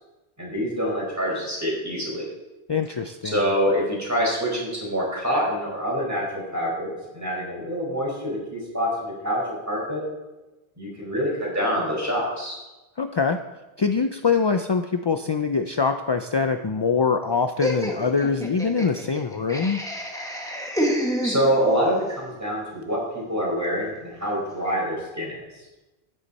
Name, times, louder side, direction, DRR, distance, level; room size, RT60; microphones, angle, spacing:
voice 1, 0.4-2.3 3.3-10.0 10.8-12.6 21.2-25.4, equal, 15° right, -4 dB, 4.6 m, -26 dB
voice 2, 2.7-3.5 13.0-13.4 13.8-19.8, left 5 dB, 45° left, 7 dB, 0.3 m, -23 dB
Laughter, 17.6-21.9, equal, 5° left, 1.5 m, -28 dB
13.0 x 9.8 x 4.2 m, 1.1 s
omnidirectional pair, 1.0 m